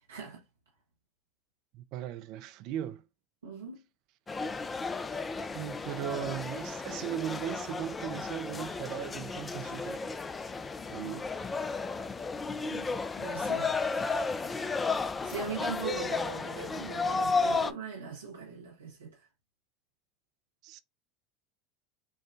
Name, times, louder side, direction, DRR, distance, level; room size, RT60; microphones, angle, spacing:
voice 1, 0.1-0.4 3.4-3.8 12.7-12.9 13.2-13.8 15.2-19.3, right 4 dB, 85° right, 0.8 m, -40 dB
voice 2, 1.7-3.0 5.5-10.1 10.9-11.3 11.8-11.9 20.6-20.8, right 11 dB, 55° right, 0.5 m, -38 dB
sound 1, 4.3-17.7, left 4 dB, 20° left, 0.4 m, -33 dB
5.6 x 2.2 x 2.5 m
hypercardioid pair, 80°, 0 cm